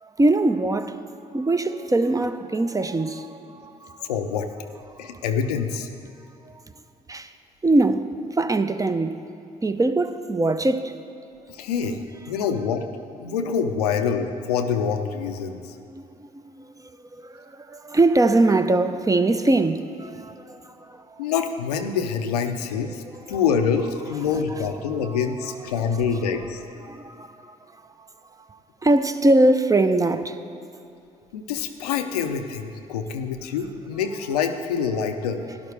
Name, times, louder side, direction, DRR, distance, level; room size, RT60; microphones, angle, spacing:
voice 1, 0.0-4.1 7.1-7.3 7.6-9.2 9.6-10.9 13.3-13.4 15.9-16.3 16.6-21.2 23.3-23.4 25.0-25.2 25.5-25.6 26.8-27.8 28.5-30.4, right 2 dB, 15° right, 0.6 m, -22 dB
voice 2, 4.0-4.5 5.0-5.9 11.5-12.0 12.3-12.8 13.2-15.7 21.2-26.6 31.3-35.4, left 6 dB, 90° left, 0.5 m, -26 dB
12.0 x 11.0 x 3.3 m
hypercardioid pair, 50°, 19 cm